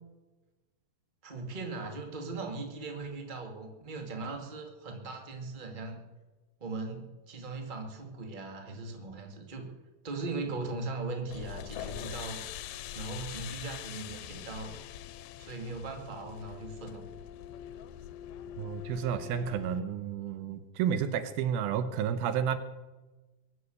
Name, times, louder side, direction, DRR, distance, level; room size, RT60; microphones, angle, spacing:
voice 1, 1.2-6.0 6.6-9.6 10.0-12.4 12.9-14.7 15.4-17.0, right 3 dB, 20° right, 3 dB, 1.6 m, -39 dB
sound 1, 11.3-19.8, left 11 dB, 90° left, 2.6 m, -43 dB
voice 2, 18.6-22.6, right 8 dB, 80° right, 11 dB, 2.7 m, -31 dB
22.0 x 7.9 x 8.0 m, 1.2 s
omnidirectional pair, 4.4 m